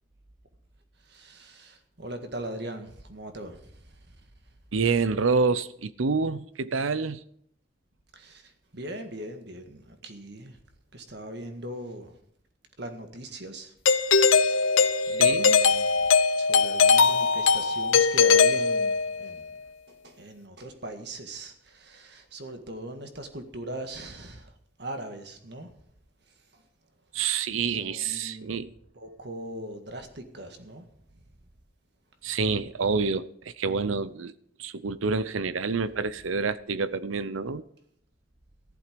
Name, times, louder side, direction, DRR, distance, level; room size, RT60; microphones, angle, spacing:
voice 1, 1.0-4.2 8.1-10.6 10.9-12.2 12.8-13.7 14.1-14.5 15.1-19.6 19.9-24.5 24.8-25.8 26.3-26.7 27.5-28.6 28.9-30.9 31.1-31.2, right 1 dB, 55° right, 1.8 m, -40 dB
voice 2, 4.7-7.2 15.0-15.6 27.1-28.7 32.2-34.3 34.6-37.6, right 4 dB, 85° right, 0.7 m, -27 dB
Doorbell, 13.9-19.3, left 5 dB, 85° left, 0.8 m, -21 dB
14.5 x 11.5 x 5.2 m
head